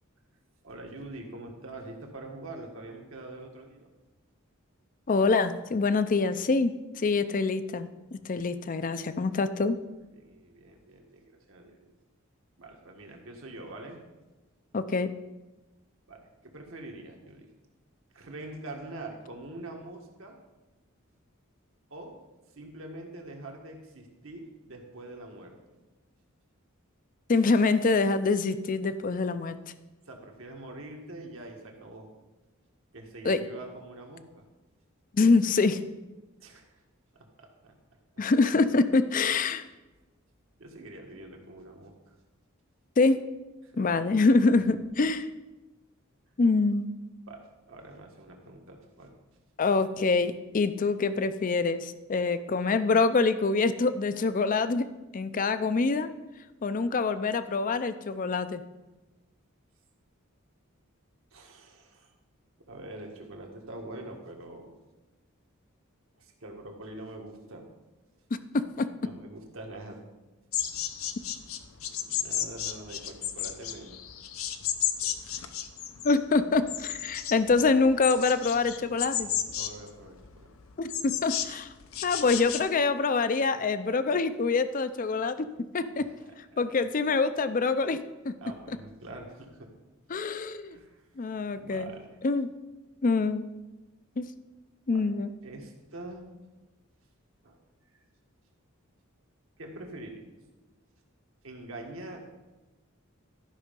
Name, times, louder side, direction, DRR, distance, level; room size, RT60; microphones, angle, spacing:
voice 1, 0.6-3.9 10.1-11.8 12.6-14.0 16.1-17.5 18.1-20.4 21.9-22.1 22.5-25.6 30.1-32.1 32.9-34.4 36.4-36.8 37.1-37.7 40.6-41.9 43.6-43.9 47.3-47.4 47.7-49.1 61.3-62.1 62.7-64.8 66.2-67.7 69.0-70.0 72.0-74.0 75.0-75.1 79.1-80.5 86.0-86.6 88.4-89.7 90.7-91.3 91.5-92.2 94.9-96.3 97.4-97.6 99.6-100.2 101.4-102.3, right 2 dB, 70° right, 1 dB, 1.6 m, -44 dB
voice 2, 5.1-9.8 14.7-15.1 27.3-29.6 33.2-33.4 35.1-35.8 38.2-39.7 43.0-43.2 43.8-45.3 46.4-46.9 49.6-54.9 55.1-56.1 56.6-58.6 68.5-68.9 76.0-79.3 80.8-81.7 82.0-85.5 85.7-86.1 86.6-88.0 88.2-88.3 90.1-90.8 91.2-91.9 92.2-92.5 93.0-93.4 94.2-94.3 94.9-95.3, left 4 dB, 40° left, 12 dB, 0.5 m, -25 dB
sound 1, 70.5-82.6, left 10 dB, 80° left, 0.7 m, -33 dB
12.5 x 5.5 x 5.2 m, 1.1 s
head